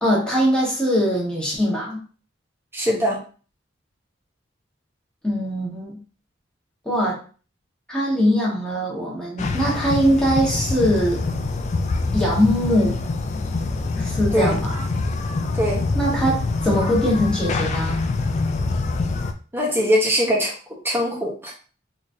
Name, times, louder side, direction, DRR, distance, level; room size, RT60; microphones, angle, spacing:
voice 1, 0.0-2.0 5.2-6.0 6.8-7.2 7.9-11.2 12.1-13.0 14.0-14.8 15.9-18.0, equal, 5° left, -4 dB, 1.2 m, -21 dB
voice 2, 2.7-3.2 14.3-14.6 15.6-15.8 19.5-20.5 20.8-21.5, equal, 10° right, -3 dB, 1.1 m, -21 dB
sound 1, 9.4-19.3, left 3 dB, 35° left, 0.3 m, -25 dB
3.9 x 3.0 x 2.6 m, 0.38 s
head